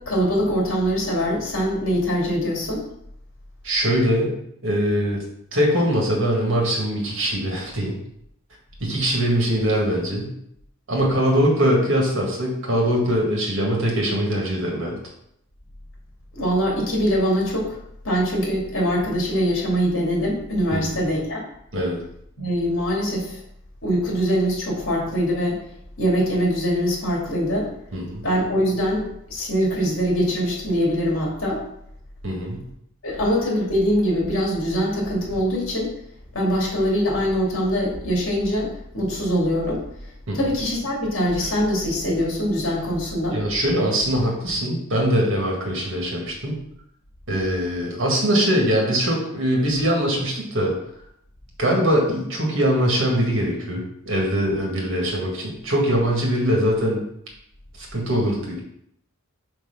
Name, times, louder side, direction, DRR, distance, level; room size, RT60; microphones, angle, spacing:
voice 1, 0.0-2.8 16.3-17.8 18.0-21.4 22.4-23.4 23.8-25.6 26.0-27.7 28.2-31.6 33.0-35.9 36.3-39.8 40.3-43.4, equal, 65° left, -3 dB, 2.6 m, -23 dB
voice 2, 3.6-4.3 4.6-5.2 5.5-8.0 8.8-10.3 10.9-15.0 20.7-21.0 21.7-22.0 27.9-28.2 32.2-32.6 40.3-40.4 43.3-46.5 47.3-50.7 51.6-57.0 57.8-58.6, equal, 60° right, -1 dB, 1.9 m, -22 dB
4.8 x 4.6 x 5.8 m, 0.74 s
head